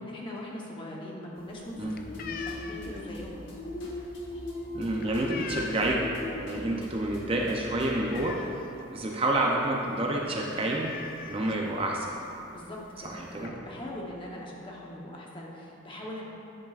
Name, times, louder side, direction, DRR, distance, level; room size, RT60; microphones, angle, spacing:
voice 1, 0.0-3.3 12.5-16.2, left 1 dB, 25° left, -3 dB, 0.9 m, -41 dB
sound 1, 1.4-6.1 6.5-6.8 7.1-7.2 7.5-8.9 9.3-9.4 9.7-9.9 10.1-10.2 10.7-11.9 12.7-12.8 13.1-13.5, left 6 dB, 45° left, 0.4 m, -42 dB
sound 2, 1.7-14.1, left 2 dB, 80° left, 1.1 m, -43 dB
sound 3, 2.0-8.5, left 1 dB, 60° left, 1.2 m, -46 dB
voice 2, 4.7-6.1 6.3-8.4 8.9-10.9 11.2-12.2 13.0-13.5, right 1 dB, 25° right, -1 dB, 0.6 m, -29 dB
9.8 x 7.3 x 2.4 m, 2.7 s
head